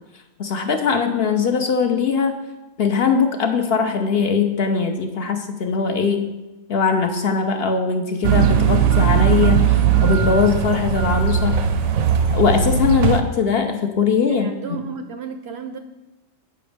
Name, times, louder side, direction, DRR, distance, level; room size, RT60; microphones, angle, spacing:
voice 1, 0.4-2.4 2.8-6.3 6.7-11.6 12.3-14.8, left 5 dB, 55° left, 5 dB, 0.8 m, -20 dB
sound 1, 8.2-13.2, right 8 dB, 85° right, 1.1 m, -18 dB
voice 2, 9.6-10.0 14.3-15.8, right 6 dB, 65° right, 7 dB, 0.7 m, -34 dB
7.8 x 5.2 x 5.1 m, 1.1 s
omnidirectional pair, 1.4 m